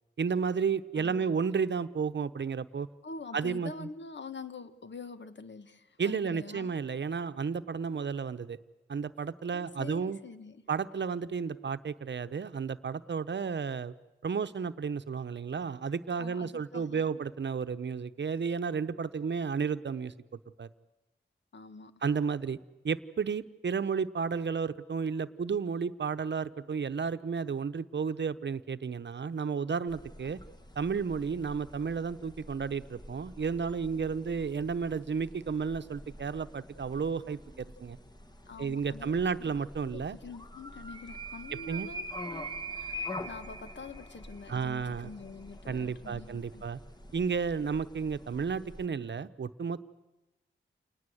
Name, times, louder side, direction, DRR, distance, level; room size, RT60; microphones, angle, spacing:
voice 1, 0.2-2.9 3.3-3.9 6.0-8.6 8.9-10.2 10.7-13.9 14.2-20.1 20.6-20.7 22.0-22.6 22.8-30.4 30.8-38.0 38.6-40.2 41.7-41.9 44.5-45.1 45.7-46.8 47.1-49.8, right 6 dB, 60° right, 0.9 m, -32 dB
voice 2, 0.9-1.3 3.0-6.8 9.5-10.7 16.2-17.2 21.5-22.0 38.4-39.5 39.8-46.7, left 4 dB, 60° left, 1.4 m, -46 dB
sound 1, 29.9-48.9, equal, 20° left, 1.7 m, -45 dB
28.5 x 19.5 x 7.9 m
cardioid pair, 55°, 21 cm